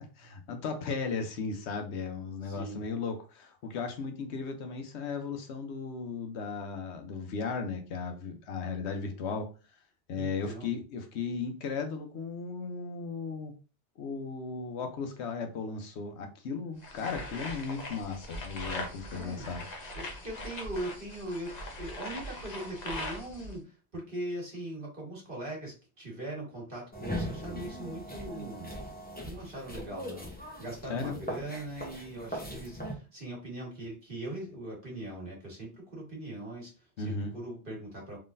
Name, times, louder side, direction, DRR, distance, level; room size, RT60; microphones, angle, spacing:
voice 1, 0.0-9.5 10.1-13.5 14.0-19.6 30.9-31.2 37.0-37.3, left 5 dB, 80° left, 6 dB, 1.0 m, -36 dB
voice 2, 2.4-2.8 10.2-10.7 19.1-19.5 20.0-28.7 29.2-30.3 30.6-38.2, right 1 dB, 50° right, -2 dB, 1.7 m, -40 dB
sound 1, 16.8-23.5, left 1 dB, 45° left, 0.8 m, -41 dB
sound 2, 26.9-32.9, equal, 10° left, 0.7 m, -40 dB
3.7 x 3.3 x 2.6 m, 0.33 s
omnidirectional pair, 1.1 m